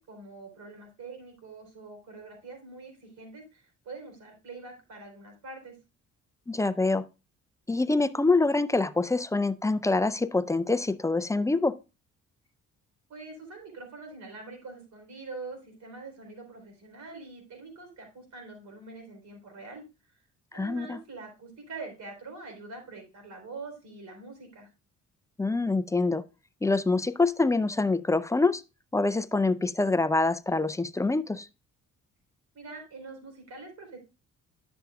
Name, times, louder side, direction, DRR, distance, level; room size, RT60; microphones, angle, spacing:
voice 1, 0.0-5.8 13.1-19.8 20.5-24.7 32.5-34.0, right 3 dB, 70° right, 4.0 m, -44 dB
voice 2, 6.5-7.1 7.7-11.7 20.5-21.0 25.4-26.2 26.6-28.6 28.9-31.5, left 3 dB, 10° left, 0.4 m, -25 dB
10.5 x 7.0 x 2.3 m
cardioid pair, 90°, 30 cm